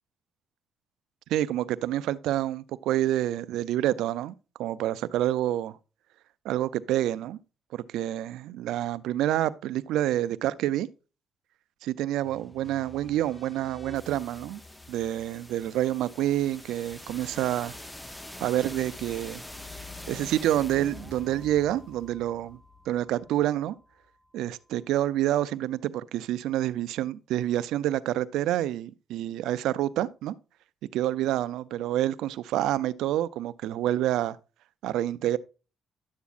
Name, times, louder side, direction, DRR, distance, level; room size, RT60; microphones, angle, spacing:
voice 1, 1.3-5.8 6.4-7.4 7.7-10.9 11.8-14.6 14.9-17.7 18.4-19.4 20.1-22.6 22.9-23.8 24.3-30.3 30.9-34.4 34.8-35.4, right 13 dB, 90° right, 0.4 m, -28 dB
sound 1, 12.2-24.1, left 2 dB, 10° left, 0.7 m, -45 dB
10.0 x 8.2 x 2.4 m
cardioid pair, 90°, 0 cm